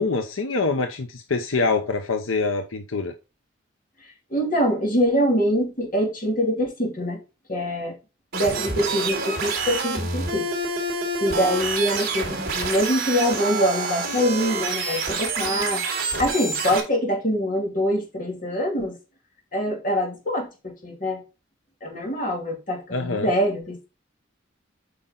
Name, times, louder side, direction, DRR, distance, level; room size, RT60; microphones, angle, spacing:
voice 1, 0.0-3.1 22.9-23.3, left 3 dB, 80° left, 0.9 m, -25 dB
voice 2, 4.0-7.2 7.5-8.0 8.3-10.5 11.2-19.0 19.5-21.2 21.8-23.8, equal, 40° left, 2.8 m, -24 dB
sound 1, 8.3-16.8, right 3 dB, 50° right, 3.4 m, -27 dB
8.4 x 5.2 x 3.8 m
head